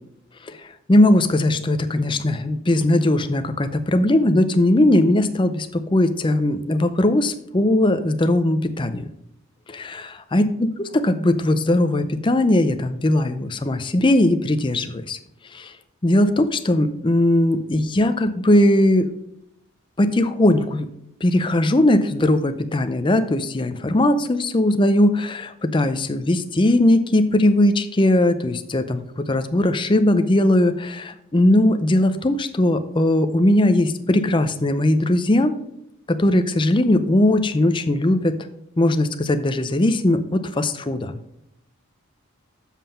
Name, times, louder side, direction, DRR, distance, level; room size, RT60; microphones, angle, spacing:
voice 1, 0.9-9.1 9.7-15.2 15.5-15.7 16.0-19.1 20.0-20.9 21.2-35.6 36.1-38.4 38.8-41.2, left 1 dB, 25° left, 10 dB, 0.5 m, -19 dB
7.3 x 5.6 x 5.6 m, 0.78 s
head